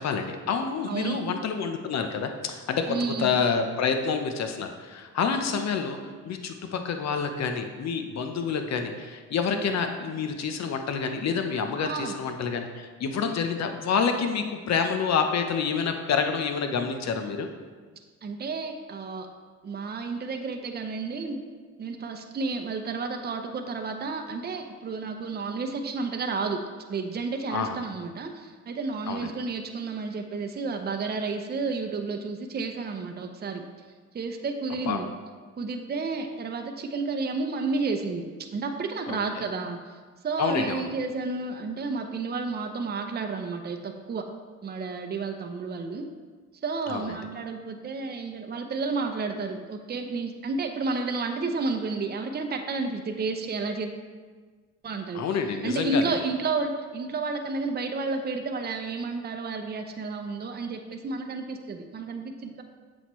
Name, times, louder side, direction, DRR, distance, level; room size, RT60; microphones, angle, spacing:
voice 1, 0.0-6.0 6.2-17.5 27.5-27.8 29.1-29.3 34.9-35.0 39.1-39.4 40.4-40.9 46.9-47.0 55.1-56.2, left 6 dB, 60° left, 6 dB, 0.9 m, -28 dB
voice 2, 0.8-1.2 2.9-3.3 11.8-12.1 18.2-19.3 19.6-21.4 21.8-26.6 26.9-33.6 34.1-35.1 35.6-38.2 38.5-39.8 40.2-44.2 44.6-46.1 46.6-53.9 54.8-55.2 55.6-62.6, right 4 dB, 35° right, 4 dB, 0.7 m, -31 dB
7.8 x 6.4 x 3.1 m, 1.5 s
cardioid pair, 90°, 30 cm